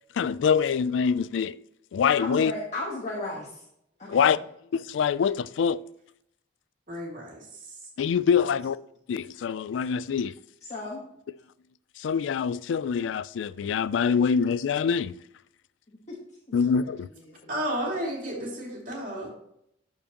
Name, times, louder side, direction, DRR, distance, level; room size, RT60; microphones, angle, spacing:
voice 1, 0.1-1.6 1.9-2.5 4.1-4.4 4.7-5.8 8.0-8.8 9.1-10.3 12.0-15.2 16.5-17.1, left 6 dB, 85° left, 0.3 m, -25 dB
voice 2, 2.1-3.6 4.0-4.4 8.4-8.5 10.7-11.0 15.9-16.2 16.5-16.9 17.3-17.7, left 2 dB, 40° left, 1.3 m, -36 dB
voice 3, 6.9-7.4 17.5-19.3, right 1 dB, 45° right, 2.7 m, -32 dB
12.5 x 4.7 x 2.9 m
head